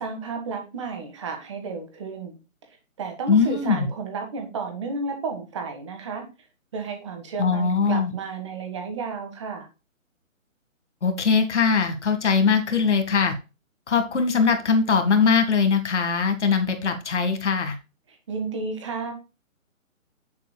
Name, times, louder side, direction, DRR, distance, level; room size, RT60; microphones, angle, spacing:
voice 1, 0.0-2.4 3.0-6.2 6.7-9.7 18.3-19.1, right 4 dB, 20° right, 4 dB, 1.6 m, -32 dB
voice 2, 3.3-3.9 7.4-8.1 11.0-13.4 13.9-17.8, left 5 dB, 55° left, 7 dB, 2.0 m, -21 dB
9.6 x 7.4 x 2.3 m, 0.29 s
hypercardioid pair, 170°, 41 cm